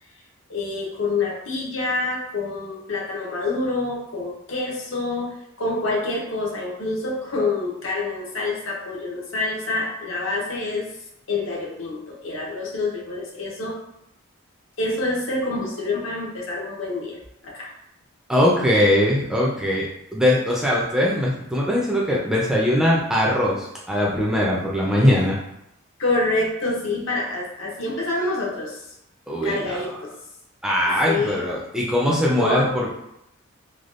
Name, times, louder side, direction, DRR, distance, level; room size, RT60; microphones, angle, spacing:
voice 1, 0.5-10.9 11.3-13.8 14.8-17.7 26.0-28.8 29.4-30.1 31.1-31.5 32.3-32.8, left 2 dB, 70° left, -2 dB, 0.8 m, -27 dB
voice 2, 18.3-25.4 29.3-29.8 30.6-32.9, left 1 dB, 5° right, -5 dB, 0.5 m, -21 dB
3.4 x 2.3 x 2.5 m, 0.80 s
head